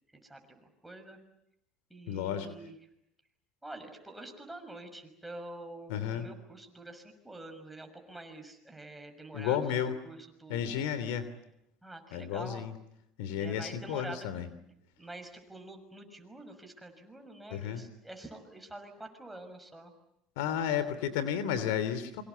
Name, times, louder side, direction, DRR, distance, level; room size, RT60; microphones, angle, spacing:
voice 1, 0.1-1.2 1.9-2.7 3.6-9.8 10.0-10.8 11.8-12.7 13.4-14.3 15.0-19.9, right 2 dB, 5° right, 5 dB, 6.2 m, -47 dB
voice 2, 2.1-2.5 5.9-6.3 9.3-9.9 10.5-11.3 12.1-12.7 13.2-14.5 17.5-17.8 20.4-22.2, left 9 dB, 80° left, 14 dB, 3.0 m, -32 dB
27.5 x 24.5 x 8.3 m, 0.80 s
supercardioid pair, 105°, 0 cm